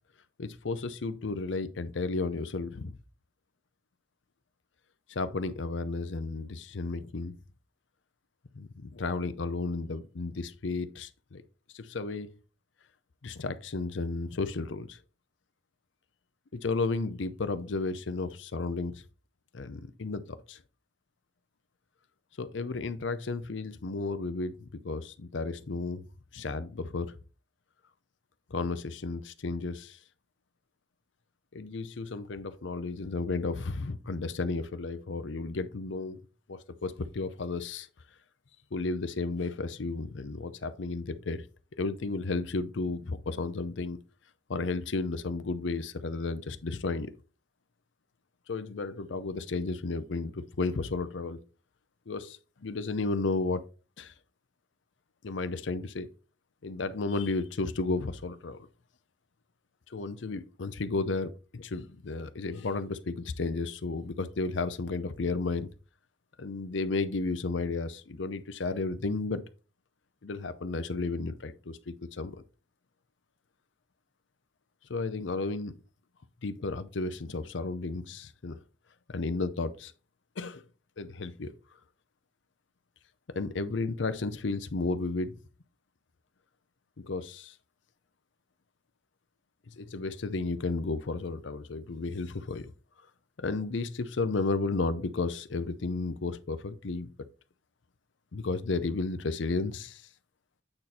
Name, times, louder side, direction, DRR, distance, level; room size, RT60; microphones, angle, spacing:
voice 1, 0.4-2.9 5.1-7.3 8.5-11.4 11.7-12.3 13.2-15.0 16.6-19.0 19.5-20.6 22.4-26.0 26.3-27.2 28.5-30.0 31.5-36.2 36.5-37.9 38.7-41.4 41.8-44.0 44.5-47.1 48.5-51.4 52.1-53.6 54.0-54.1 55.2-56.1 56.6-58.6 59.9-65.7 66.4-69.4 70.2-72.4 74.9-75.8 76.4-78.6 79.1-79.9 80.4-80.6 81.0-81.5 83.4-85.4 87.0-87.5 89.8-92.7 93.4-97.1 98.3-100.0, left 3 dB, 85° left, 0.6 m, -33 dB
8.7 x 4.2 x 4.2 m
head